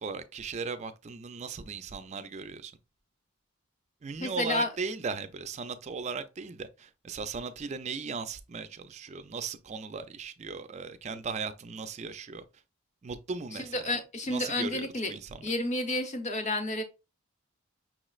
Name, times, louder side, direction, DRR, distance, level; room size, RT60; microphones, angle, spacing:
voice 1, 0.0-2.7 4.0-12.4 13.0-14.0 14.3-15.5, right 4 dB, 30° right, 0.4 m, -37 dB
voice 2, 4.2-4.7 13.5-15.1 15.4-16.8, left 2 dB, 35° left, 0.8 m, -30 dB
5.8 x 3.1 x 2.3 m
head